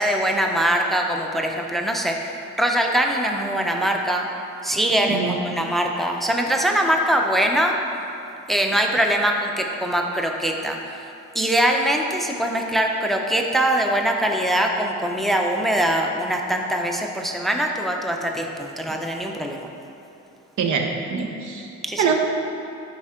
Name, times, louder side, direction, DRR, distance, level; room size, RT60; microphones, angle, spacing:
voice 1, 0.0-4.3 4.6-7.8 8.5-10.8 11.3-19.7 21.8-22.0, right 1 dB, ahead, 2 dB, 0.6 m, -22 dB
voice 2, 5.1-5.4 20.6-21.7 22.0-22.2, right 5 dB, 75° right, 2 dB, 1.0 m, -24 dB
11.0 x 4.5 x 3.7 m, 2.8 s
cardioid pair, 90°, 30 cm